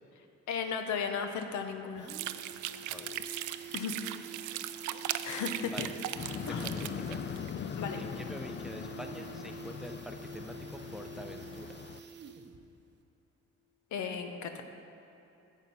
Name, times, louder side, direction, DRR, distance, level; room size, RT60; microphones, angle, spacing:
voice 1, 0.5-2.1 3.7-4.0 5.0-5.9 6.5-6.7 7.7-8.0 13.9-14.6, left 6 dB, 75° left, 6 dB, 0.9 m, -35 dB
sound 1, 1.1-1.2 1.4-1.5 1.8-12.7 12.9-13.0, right 4 dB, 35° right, 0.7 m, -48 dB
sound 2, 2.1-7.5, right 12 dB, 80° right, 0.5 m, -38 dB
voice 2, 2.9-3.3 5.6-5.9 6.5-7.2 7.9-11.8, equal, ahead, 5 dB, 0.7 m, -45 dB
sound 3, 6.2-12.0, left 8 dB, 40° left, 0.4 m, -41 dB
9.0 x 7.4 x 5.5 m, 2.9 s
cardioid pair, 90°, 30 cm